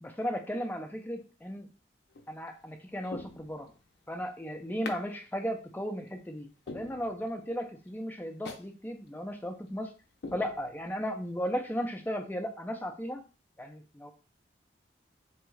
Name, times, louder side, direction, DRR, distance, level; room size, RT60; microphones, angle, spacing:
voice 1, 0.0-1.7 2.3-3.7 4.1-9.9 10.3-13.2 13.6-14.1, equal, 10° left, 4 dB, 0.4 m, -35 dB
sound 1, 2.1-2.5 3.0-4.0 4.8-5.1 5.5-5.6 6.1-6.2 6.7-7.5 7.9-8.0 8.4-8.7 9.1-9.2 9.7-9.8 10.2-11.1 11.5-11.6, left 3 dB, 65° left, 0.4 m, -44 dB
3.5 x 2.3 x 3.1 m, 0.34 s
head